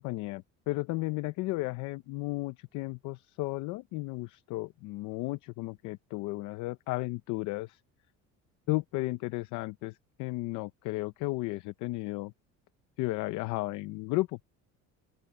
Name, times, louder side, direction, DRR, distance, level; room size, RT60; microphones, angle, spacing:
voice 1, 0.0-7.8 8.7-12.3 13.0-14.4, left 20 dB, 70° left, 0.7 m, -34 dB
open air
cardioid pair, 175°, 31 cm